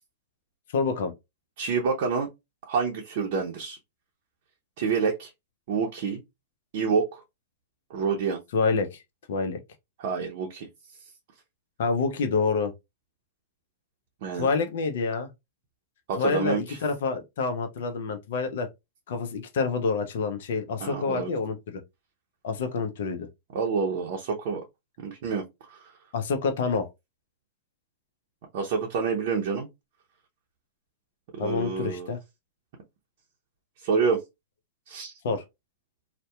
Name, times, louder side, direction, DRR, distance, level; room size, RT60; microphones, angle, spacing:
voice 1, 0.7-1.1 8.5-9.0 9.3-9.6 11.8-12.7 14.3-15.3 16.2-18.7 19.1-21.8 22.4-23.3 26.1-26.9 31.4-32.2 35.2-35.4, left 4 dB, 65° left, 0.5 m, -27 dB
voice 2, 1.6-2.3 2.7-3.8 4.8-5.3 5.7-6.2 6.7-7.2 7.9-8.4 10.0-10.7 14.2-14.5 16.1-16.8 20.8-21.3 23.5-24.6 25.0-25.9 28.5-29.7 31.4-32.1 33.8-34.2 34.9-35.1, right 5 dB, 55° right, 0.6 m, -28 dB
2.7 x 2.1 x 2.2 m
hypercardioid pair, 110°, 0 cm